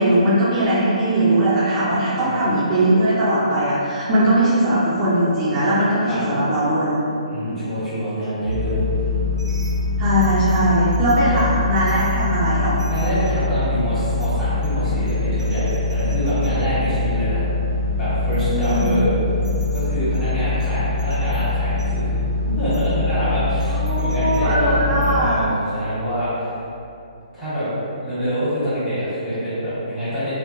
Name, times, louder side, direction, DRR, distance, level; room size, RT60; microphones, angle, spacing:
voice 1, 0.0-7.0 7.4-7.5 10.0-12.8 18.5-19.0 23.7-25.4, right 1 dB, 20° right, -11 dB, 0.6 m, -19 dB
voice 2, 7.3-8.9 11.3-11.4 12.9-17.4 18.0-19.1 19.7-22.1 22.4-26.5 27.3-27.7 28.0-30.3, equal, 5° left, -16 dB, 1.2 m, -26 dB
sound 1, 8.5-25.2, left 3 dB, 80° right, 0.6 m, -23 dB
3.7 x 2.1 x 2.6 m, 2.7 s
figure-of-eight pair, 135°, 4 cm